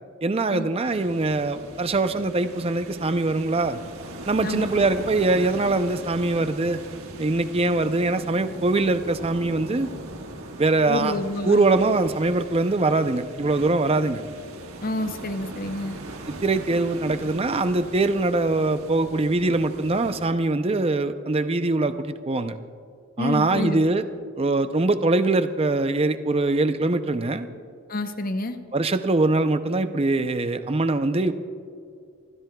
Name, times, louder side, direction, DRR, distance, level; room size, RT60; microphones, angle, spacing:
voice 1, 0.2-3.8 4.3-6.8 7.2-9.9 10.6-11.2 11.4-14.2 16.3-22.6 23.2-24.0 24.4-27.5 28.7-31.3, right 2 dB, 25° right, 10 dB, 0.5 m, -23 dB
sound 1, 0.8-20.3, right 2 dB, 75° right, 1.4 m, -40 dB
voice 2, 10.9-11.6 14.8-16.0 23.2-23.8 27.9-28.6, left 1 dB, 40° left, 8 dB, 0.8 m, -28 dB
30.0 x 15.5 x 2.3 m, 2.4 s
head